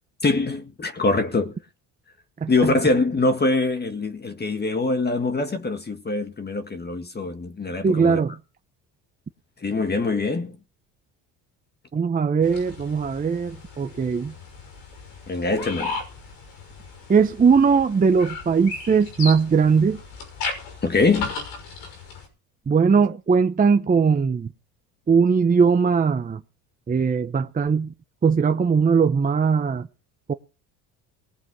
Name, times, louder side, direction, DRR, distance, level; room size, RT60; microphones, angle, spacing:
voice 1, 0.2-1.5 2.5-8.2 9.6-10.6 15.3-16.0 20.8-21.3, left 3 dB, 25° left, 1.8 m, -23 dB
voice 2, 7.8-8.3 11.9-14.3 17.1-20.0 22.7-24.5 25.1-26.4 26.9-27.9 28.2-29.9 30.3-30.4, right 5 dB, 20° right, 0.8 m, -20 dB
sound 1, 12.4-22.3, left 4 dB, 85° left, 6.1 m, -36 dB
19.5 x 7.5 x 6.2 m
supercardioid pair, 90°, 39 cm